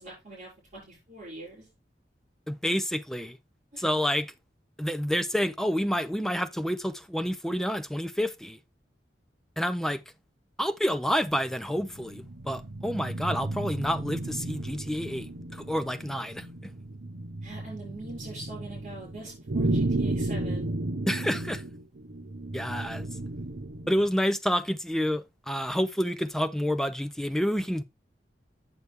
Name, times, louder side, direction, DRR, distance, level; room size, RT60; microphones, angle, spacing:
voice 1, 0.0-1.7 3.7-3.8 13.1-13.2 17.4-20.7, right 2 dB, 45° right, 6.1 m, -43 dB
voice 2, 2.5-3.4 3.8-4.3 4.8-8.6 9.6-10.0 10.6-16.7 21.1-21.6 22.5-23.1 23.9-27.8, equal, 5° left, 0.4 m, -29 dB
sound 1, 11.4-24.1, right 2 dB, 70° right, 0.8 m, -34 dB
8.0 x 6.8 x 3.4 m
head